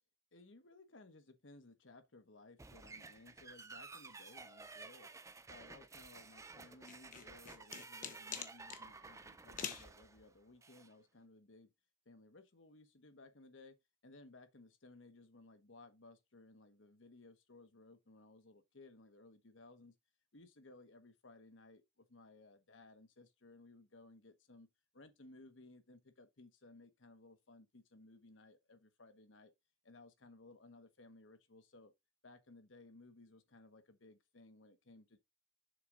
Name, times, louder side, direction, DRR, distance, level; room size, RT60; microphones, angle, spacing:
voice 1, 0.3-5.1 5.5-11.7 12.0-13.8 14.0-19.9 20.3-24.7 24.9-29.5 29.8-31.9 32.2-35.2, left 2 dB, 90° left, 1.2 m, -60 dB
sound 1, 2.6-10.9, right 3 dB, 15° right, 0.5 m, -54 dB
sound 2, 6.9-8.8 9.6-9.9, left 7 dB, 45° left, 1.0 m, -44 dB
6.7 x 3.8 x 4.7 m
head